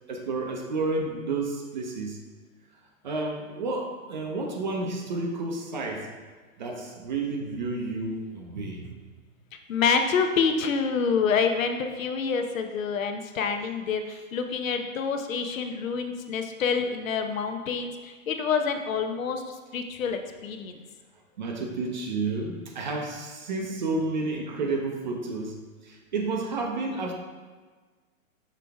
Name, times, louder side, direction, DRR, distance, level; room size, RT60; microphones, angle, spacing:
voice 1, 0.1-2.2 3.0-6.1 6.6-8.9 21.4-25.5 25.8-27.1, right 3 dB, 35° right, 1 dB, 0.6 m, -31 dB
voice 2, 9.7-20.8, left 5 dB, 70° left, 6 dB, 0.8 m, -27 dB
6.0 x 4.6 x 3.4 m, 1.4 s
hypercardioid pair, 165°, 42 cm